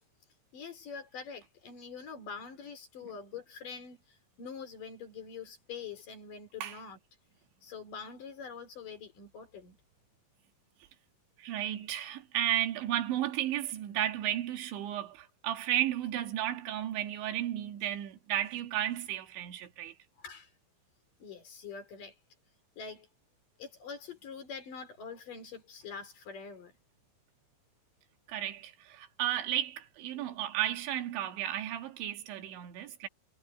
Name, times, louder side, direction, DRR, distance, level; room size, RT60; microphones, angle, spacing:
voice 1, 0.5-4.0 4.4-7.0 7.6-9.8 20.2-20.5 21.2-22.1 22.8-23.1 23.6-26.7 30.1-30.3, left 5 dB, 50° left, 4.7 m, -45 dB
voice 2, 11.4-19.9 28.3-33.1, right 12 dB, 80° right, 4.0 m, -33 dB
omnidirectional pair, 5.2 m